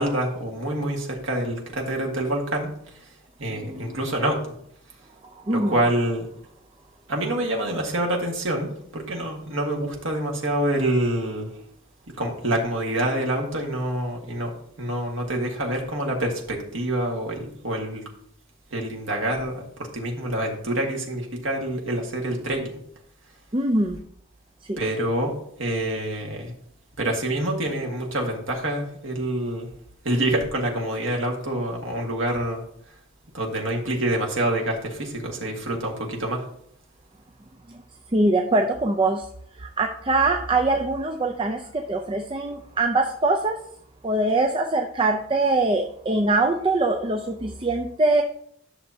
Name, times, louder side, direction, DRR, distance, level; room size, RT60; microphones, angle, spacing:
voice 1, 0.0-3.1 3.4-4.5 5.5-6.3 7.1-11.5 12.2-18.0 18.7-22.8 24.8-26.5 27.0-29.7 30.0-32.6 33.3-36.4, right 1 dB, 85° right, 0 dB, 1.8 m, -26 dB
voice 2, 23.5-24.0 24.7-24.8 38.1-39.3 39.6-43.6 44.0-48.2, right 2 dB, 25° right, 3 dB, 0.5 m, -23 dB
11.0 x 6.5 x 2.8 m, 0.67 s
head